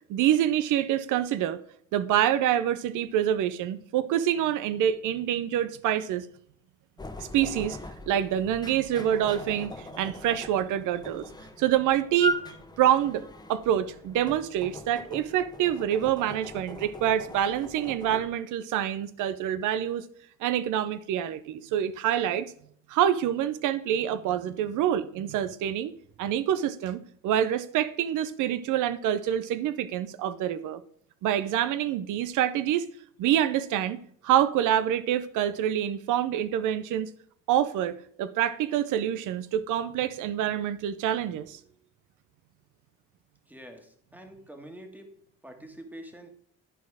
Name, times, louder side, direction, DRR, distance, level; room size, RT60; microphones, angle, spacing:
voice 1, 0.1-1.6 1.9-6.3 7.2-7.8 8.1-11.3 11.6-12.4 12.8-13.2 13.5-20.0 20.4-22.5 22.9-25.9 26.2-30.8 31.2-32.9 33.2-37.1 37.5-41.6, right 11 dB, 85° right, 0.5 m, -26 dB
sound 1, 7.0-18.3, left 1 dB, 15° left, 1.0 m, -39 dB
voice 2, 43.5-45.1 45.4-46.3, right 1 dB, 5° right, 1.6 m, -46 dB
11.5 x 4.3 x 4.7 m
cardioid pair, 90°, 30 cm